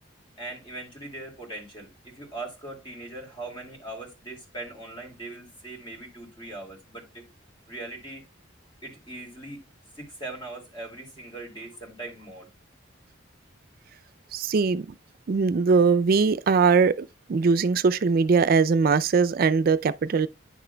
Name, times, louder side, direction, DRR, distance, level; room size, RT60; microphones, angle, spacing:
voice 1, 0.4-7.3 7.7-8.2 8.8-9.6 10.0-12.5, right 2 dB, 25° left, 2.2 m, -40 dB
voice 2, 14.3-14.9 15.3-20.3, right 5 dB, 50° right, 0.4 m, -21 dB
9.6 x 6.1 x 2.2 m
head